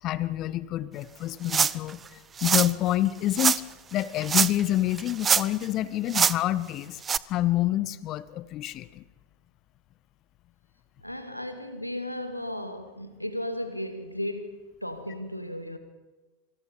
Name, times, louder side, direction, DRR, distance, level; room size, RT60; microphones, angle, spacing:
voice 1, 0.0-3.6 3.9-7.0 7.3-9.0, left 14 dB, 35° left, 1.0 m, -28 dB
sound 1, 1.5-1.9 2.4-2.7 3.4-3.6 4.2-4.7 5.0-5.7 6.1-6.4 7.0-7.2, right 6 dB, 20° right, 0.6 m, -23 dB
voice 2, 11.0-15.8, left 1 dB, 90° left, 2.3 m, -35 dB
26.5 x 25.0 x 5.4 m
figure-of-eight pair, 90°, 0 cm